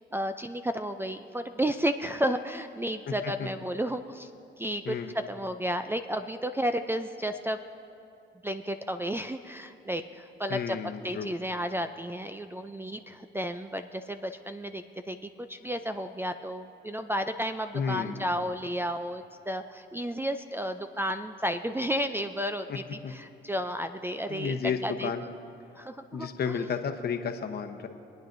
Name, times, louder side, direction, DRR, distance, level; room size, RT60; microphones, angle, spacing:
voice 1, 0.0-4.3 4.6-7.6 8.4-10.8 11.0-25.1 25.8-26.5, equal, 10° right, 8 dB, 0.4 m, -32 dB
voice 2, 10.5-11.3 17.7-18.4 22.7-22.8 23.0-23.1 24.3-25.2 26.1-27.9, left 6 dB, 55° left, 5 dB, 1.0 m, -32 dB
27.0 x 9.3 x 2.6 m, 2.7 s
cardioid pair, 90°, 20 cm